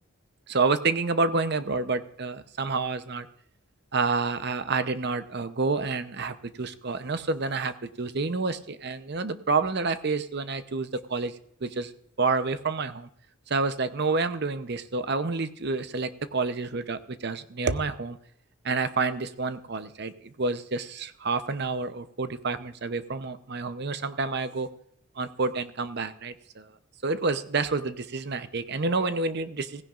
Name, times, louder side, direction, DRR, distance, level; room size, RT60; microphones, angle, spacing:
voice 1, 0.5-3.3 3.9-11.3 11.6-11.9 12.2-13.1 13.5-18.2 18.6-24.7 25.2-26.7 27.0-29.8, right 3 dB, 50° right, 11 dB, 0.8 m, -29 dB
17.0 x 16.0 x 2.5 m, 0.68 s
head